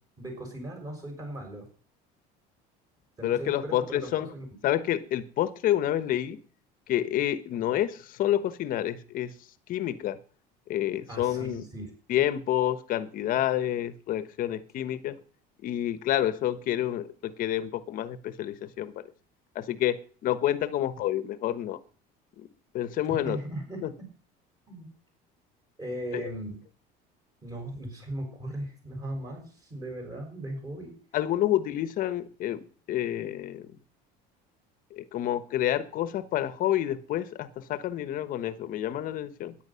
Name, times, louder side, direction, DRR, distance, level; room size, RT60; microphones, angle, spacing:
voice 1, 0.2-1.7 3.2-4.4 11.1-11.9 23.2-24.1 24.7-24.9 25.8-26.6 27.4-30.9, right 1 dB, 20° right, 6.4 m, -38 dB
voice 2, 3.2-4.3 4.6-6.4 6.9-9.3 9.7-10.2 10.7-11.6 12.1-15.2 15.6-19.0 19.5-21.8 22.7-23.4 23.8-23.9 26.1-26.3 31.1-32.6 32.9-33.7 34.9-39.5, left 12 dB, 50° left, 1.1 m, -28 dB
13.5 x 10.5 x 5.7 m
cardioid pair, 150°, 19 cm